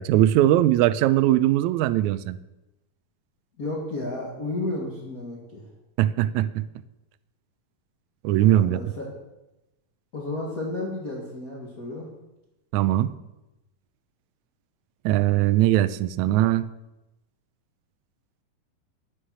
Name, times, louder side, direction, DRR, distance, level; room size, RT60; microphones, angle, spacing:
voice 1, 0.0-2.4 6.0-6.6 8.2-8.8 12.7-13.1 15.0-16.7, right 13 dB, 90° right, 14 dB, 1.6 m, -20 dB
voice 2, 3.6-5.7 8.4-9.1 10.1-12.1, left 2 dB, 35° left, -4 dB, 1.7 m, -32 dB
10.0 x 9.9 x 6.2 m, 0.97 s
omnidirectional pair, 3.9 m